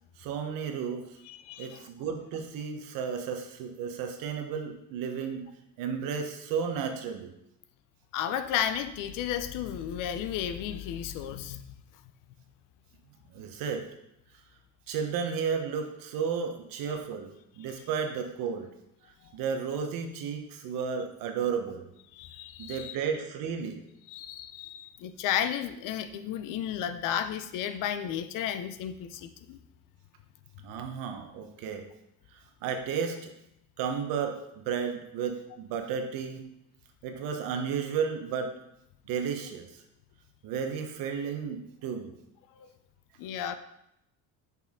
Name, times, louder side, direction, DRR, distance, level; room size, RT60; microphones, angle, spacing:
voice 1, 0.2-1.0 1.6-5.4 5.8-7.3 13.3-13.9 14.9-18.7 19.3-21.9 22.6-23.8 30.6-31.9 32.6-33.3 33.8-36.4 37.0-38.5 39.1-39.8 40.4-42.1, right 6 dB, 75° right, 5 dB, 1.0 m, -33 dB
voice 2, 1.3-1.9 8.1-11.6 22.1-23.0 24.1-29.6 42.6-42.7 43.2-43.6, left 10 dB, 65° left, 11 dB, 0.6 m, -33 dB
6.1 x 5.5 x 3.6 m, 0.81 s
cardioid pair, 170°, 34 cm